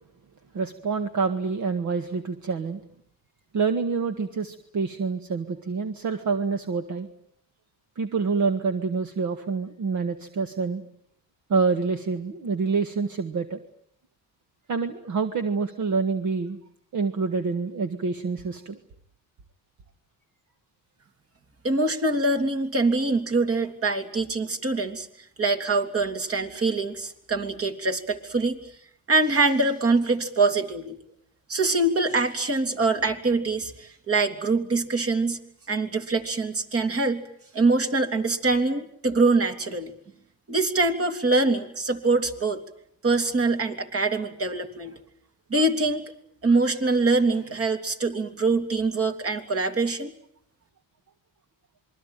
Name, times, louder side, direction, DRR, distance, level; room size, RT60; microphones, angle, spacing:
voice 1, 0.5-2.8 3.5-7.1 8.0-10.8 11.5-13.6 14.7-16.6 16.9-18.8, right 4 dB, 60° right, 7 dB, 1.9 m, -27 dB
voice 2, 21.6-25.1 25.4-28.6 29.1-31.0 31.5-35.4 35.7-37.2 37.5-39.9 40.5-42.6 43.0-45.0 45.5-46.1 46.4-50.1, right 3 dB, 40° right, 6 dB, 3.4 m, -24 dB
27.0 x 22.5 x 9.2 m, 0.69 s
cardioid pair, 90°, 34 cm